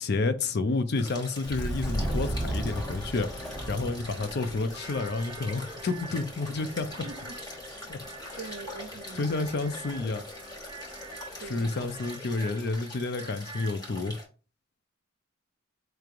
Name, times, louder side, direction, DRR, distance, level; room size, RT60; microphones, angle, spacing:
voice 1, 0.0-6.9 7.9-8.0 9.1-10.2 11.4-14.2, left 3 dB, 55° left, 0.5 m, -30 dB
sound 1, 0.9-14.3, left 1 dB, 20° left, 1.2 m, -44 dB
Subway metro underground, 1.4-12.1, right 1 dB, 5° left, 0.7 m, -38 dB
sound 2, 4.8-13.8, right 5 dB, 20° right, 0.3 m, -48 dB
voice 2, 7.0-7.9 8.4-9.4 11.4-11.8, right 4 dB, 80° right, 0.6 m, -44 dB
4.5 x 3.1 x 2.5 m
head